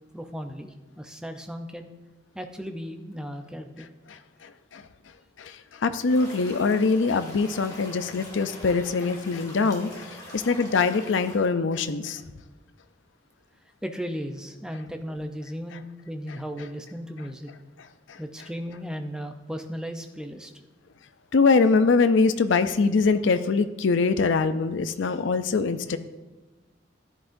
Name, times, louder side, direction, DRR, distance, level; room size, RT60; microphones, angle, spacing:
voice 1, 0.1-1.9 2.3-3.9 13.8-17.5 18.2-20.5, equal, 5° right, 5 dB, 0.6 m, -36 dB
voice 2, 4.1-4.9 5.4-12.2 18.1-18.2 21.3-26.0, left 4 dB, 85° left, 10 dB, 0.5 m, -23 dB
sound 1, 6.1-11.4, left 1 dB, 20° left, 1.8 m, -44 dB
14.0 x 10.0 x 2.6 m, 1.1 s
head